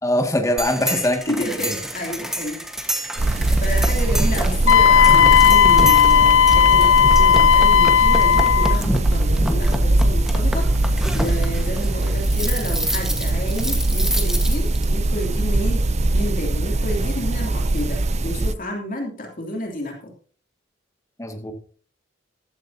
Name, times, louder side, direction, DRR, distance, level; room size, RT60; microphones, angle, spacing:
voice 1, 0.0-1.3 1.6-1.7 3.5-3.6 21.2-21.5, left 1 dB, 15° left, 4 dB, 2.0 m, -22 dB
sound 1, 0.6-14.8, equal, 5° right, 1.4 m, -28 dB
voice 2, 1.3-2.6 3.6-15.9 16.1-20.1, left 1 dB, 45° left, 1 dB, 2.9 m, -30 dB
sound 2, 3.2-18.5, right 2 dB, 35° right, 0.6 m, -21 dB
Wind instrument woodwind instrument, 4.7-8.8, left 8 dB, 85° left, 0.6 m, -14 dB
14.5 x 13.0 x 2.8 m, 0.41 s
head